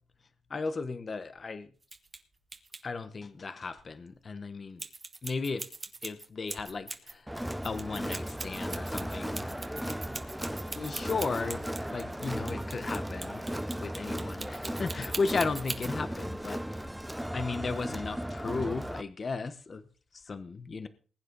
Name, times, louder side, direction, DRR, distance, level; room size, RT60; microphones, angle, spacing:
voice 1, 0.5-1.7 2.8-4.8 5.2-5.7 6.0-9.5 10.7-11.6 11.9-13.4 13.8-17.1 17.3-19.9 20.1-20.9, left 4 dB, 40° left, 12 dB, 1.0 m, -35 dB
sound 1, 1.8-2.2 2.5-2.8 4.8-7.1 7.5-15.9, right 3 dB, 25° right, 1.5 m, -40 dB
Crowd, 7.3-19.0, equal, 5° right, 0.7 m, -36 dB
20.0 x 9.7 x 4.0 m, 0.40 s
cardioid pair, 115°, 0 cm